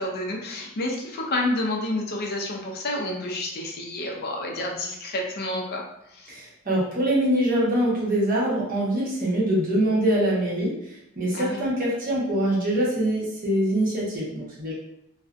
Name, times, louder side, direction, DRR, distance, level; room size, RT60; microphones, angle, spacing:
voice 1, 0.0-6.4 11.3-11.6, left 1 dB, 50° left, 0 dB, 0.4 m, -29 dB
voice 2, 6.3-10.7 11.1-14.7, right 1 dB, 40° right, -7 dB, 0.9 m, -24 dB
2.4 x 2.1 x 2.4 m, 0.83 s
head